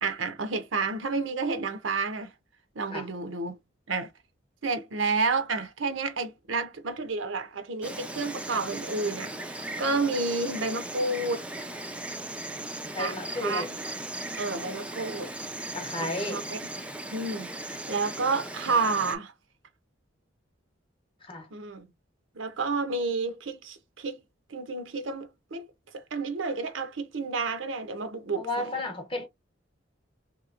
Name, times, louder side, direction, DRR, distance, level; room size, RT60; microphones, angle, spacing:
voice 1, 0.0-2.3 2.7-3.6 3.9-4.1 4.6-11.5 13.0-13.7 14.4-15.3 16.0-16.6 17.1-19.3 21.5-21.9 22.3-24.2 24.5-25.6 25.9-28.7, right 3 dB, 80° right, 0.8 m, -30 dB
Insect, 7.8-19.2, right 1 dB, 5° right, 0.5 m, -38 dB
voice 2, 12.9-13.7 15.7-16.5 21.2-21.5 28.4-29.3, left 2 dB, 30° left, 1.0 m, -33 dB
3.3 x 2.9 x 2.4 m
head